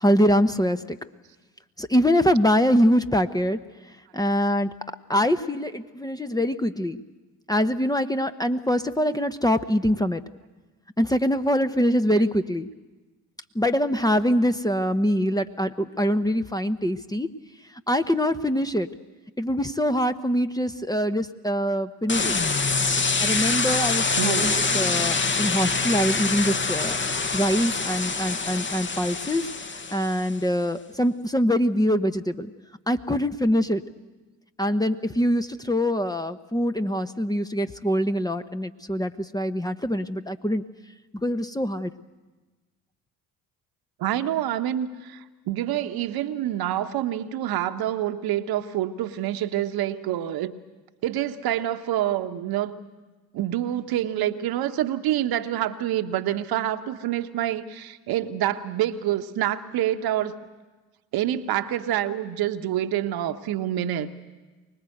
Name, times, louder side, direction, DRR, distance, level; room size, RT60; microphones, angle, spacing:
voice 1, 0.0-1.0 1.8-3.6 4.1-4.7 5.1-7.0 7.5-10.2 11.0-12.7 13.5-17.3 17.9-18.9 19.4-22.3 23.2-27.0 27.3-29.5 29.9-32.5 32.9-33.8 34.6-40.6 41.2-41.9, equal, 10° left, 9 dB, 1.0 m, -24 dB
sound 1, 22.1-30.3, left 4 dB, 25° left, 1.4 m, -25 dB
voice 2, 24.2-24.6 44.0-50.6 51.0-52.8 53.3-60.4 61.1-64.1, right 12 dB, 60° right, 8 dB, 1.2 m, -27 dB
24.0 x 19.5 x 8.0 m, 1.2 s
hypercardioid pair, 55°, 41 cm